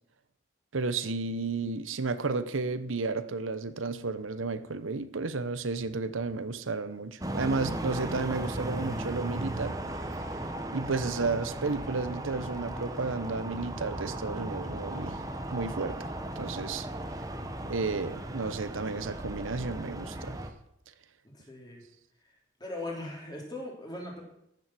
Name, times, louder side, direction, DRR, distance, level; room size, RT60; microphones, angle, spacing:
voice 1, 0.7-9.8 10.7-15.2 15.5-16.9 17.7-20.4, right 3 dB, 90° right, 0.9 m, -32 dB
sound 1, 7.2-20.5, right 1 dB, 20° right, 1.0 m, -36 dB
voice 2, 21.3-21.8 22.6-24.2, left 1 dB, 20° left, 3.2 m, -39 dB
14.0 x 7.0 x 7.6 m
head